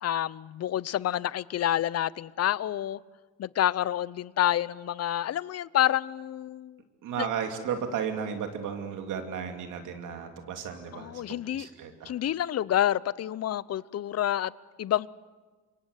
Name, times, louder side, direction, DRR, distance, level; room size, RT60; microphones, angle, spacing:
voice 1, 0.0-3.0 3.4-6.8 7.2-7.3 10.9-11.7 12.0-14.5 14.8-15.1, left 12 dB, 55° left, 21 dB, 0.7 m, -28 dB
voice 2, 7.0-12.1, right 7 dB, 85° right, 5 dB, 2.9 m, -34 dB
26.5 x 23.5 x 8.1 m, 1.4 s
cardioid pair, 90°, 30 cm